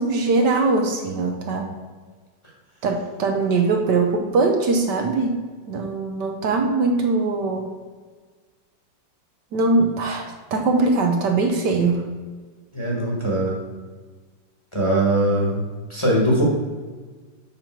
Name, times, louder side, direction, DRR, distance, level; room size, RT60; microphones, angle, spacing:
voice 1, 0.0-1.8 2.8-5.4 5.7-7.7 9.5-12.0, right 3 dB, 70° right, 3 dB, 1.4 m, -21 dB
voice 2, 12.7-13.6 14.7-15.6 15.9-16.4, right 1 dB, 15° left, -3 dB, 1.3 m, -21 dB
7.5 x 5.3 x 4.5 m, 1.4 s
omnidirectional pair, 2.1 m